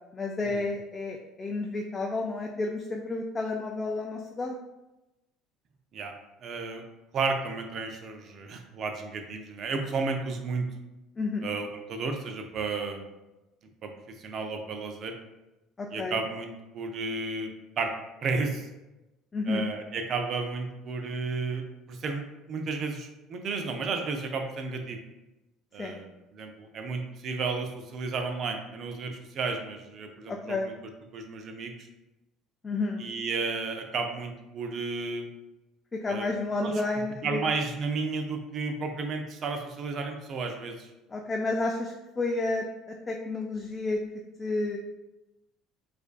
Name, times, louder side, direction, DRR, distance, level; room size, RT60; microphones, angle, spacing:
voice 1, 0.1-4.6 11.2-11.5 15.8-16.2 19.3-19.6 25.8-26.0 30.3-30.7 32.6-33.0 35.9-37.4 41.1-44.0 44.4-44.8, left 3 dB, 25° left, 1 dB, 0.4 m, -31 dB
voice 2, 6.4-6.8 7.1-10.7 11.4-13.1 13.8-15.1 15.9-17.9 18.2-18.7 19.5-22.2 22.5-25.0 25.7-30.7 31.1-31.7 33.0-35.3 36.1-36.3 36.6-36.8 37.2-40.9, right 4 dB, 50° right, 5 dB, 0.5 m, -33 dB
4.7 x 2.6 x 2.3 m, 1.0 s
supercardioid pair, 80°, 0 cm